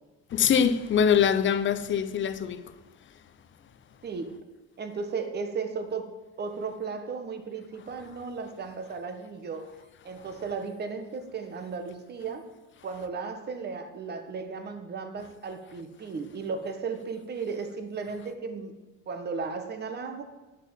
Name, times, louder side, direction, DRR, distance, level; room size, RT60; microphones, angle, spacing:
voice 1, 0.3-2.7 8.0-8.2 10.2-10.5 12.9-13.1, left 7 dB, 40° left, 0.8 m, -25 dB
voice 2, 4.0-4.4 4.8-6.1 6.4-9.7 10.0-12.5 12.8-18.7 19.1-20.2, right 5 dB, 35° right, 1.5 m, -35 dB
10.5 x 8.3 x 7.4 m
cardioid pair, 150°, 30 cm